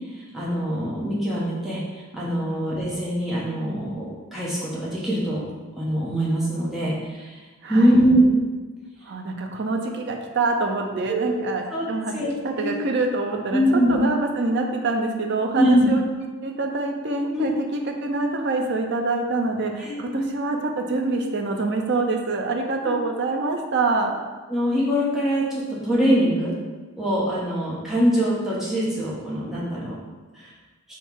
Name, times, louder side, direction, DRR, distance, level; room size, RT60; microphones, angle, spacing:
voice 1, 0.3-5.4 5.8-7.4 7.7-8.3 11.1-11.4 11.7-11.8 12.1-12.3 12.6-12.8 13.5-14.0 15.6-15.9 17.3-17.5 19.8-20.3 24.5-26.6 27.0-29.9 30.3-30.5, equal, ahead, -8 dB, 0.9 m, -23 dB
voice 2, 7.6-8.0 9.0-12.1 12.4-13.6 13.9-24.1, right 3 dB, 55° right, 2 dB, 0.5 m, -25 dB
3.7 x 3.1 x 4.6 m, 1.3 s
head